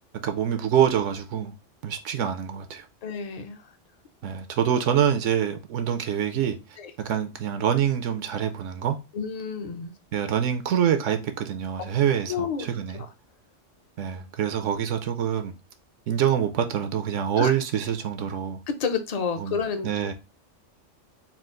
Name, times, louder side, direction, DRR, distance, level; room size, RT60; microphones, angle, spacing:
voice 1, 0.2-1.5 1.8-2.9 4.2-6.6 7.0-9.0 10.1-13.0 14.0-15.5 16.1-18.6 19.4-20.1, right 9 dB, 75° right, 0.9 m, -25 dB
voice 2, 3.0-3.6 6.8-6.9 9.1-9.9 12.3-12.7 12.9-13.1 17.4-17.5 18.7-19.9, left 6 dB, 45° left, 0.5 m, -30 dB
4.3 x 2.4 x 3.6 m
omnidirectional pair, 1.3 m